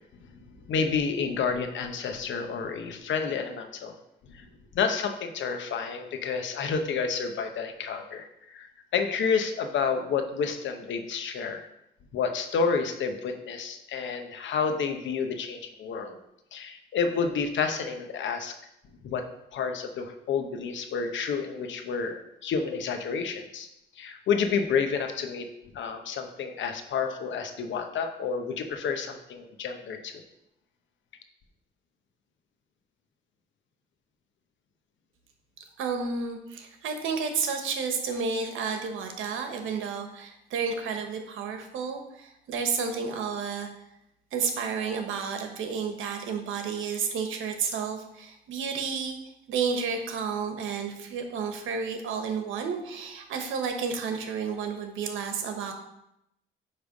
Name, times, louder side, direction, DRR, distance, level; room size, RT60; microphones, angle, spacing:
voice 1, 0.7-4.0 4.3-4.5 4.7-8.7 8.9-11.7 12.1-16.2 16.5-18.6 19.0-19.2 19.5-23.7 24.0-25.5 25.7-30.2, left 5 dB, 70° left, 6 dB, 0.9 m, -30 dB
voice 2, 35.8-43.7 44.3-49.2 49.5-55.7, right 5 dB, 85° right, 5 dB, 1.2 m, -31 dB
9.6 x 3.4 x 5.1 m, 0.83 s
cardioid pair, 90°, 20 cm